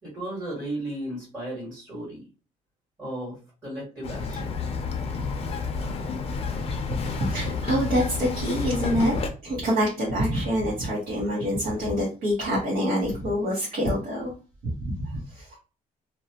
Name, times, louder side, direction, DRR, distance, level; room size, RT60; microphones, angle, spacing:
voice 1, 0.0-2.2 3.0-4.5, right 1 dB, 25° right, -7 dB, 1.5 m, -35 dB
Bird vocalization bird call bird song, 4.0-9.3, left 4 dB, 40° left, 0.5 m, -30 dB
voice 2, 6.9-14.3 14.8-15.6, equal, 65° right, -5 dB, 1.1 m, -26 dB
2.7 x 2.2 x 2.8 m, 0.34 s
cardioid pair, 140°, 15 cm